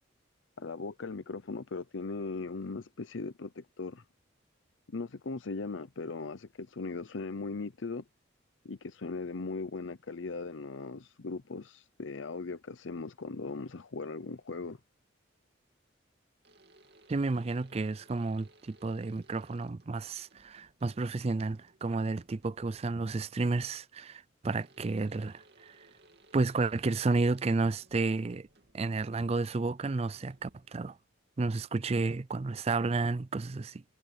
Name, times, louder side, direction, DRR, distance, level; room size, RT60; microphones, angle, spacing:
voice 1, 0.6-4.0 4.9-8.0 8.6-14.8, left 3 dB, 80° left, 0.7 m, -38 dB
sound 1, 16.4-23.1 24.4-31.1, right 2 dB, 55° right, 2.9 m, -62 dB
voice 2, 17.1-25.9 26.3-28.5 28.7-31.0 31.4-33.8, right 3 dB, 30° right, 0.4 m, -31 dB
head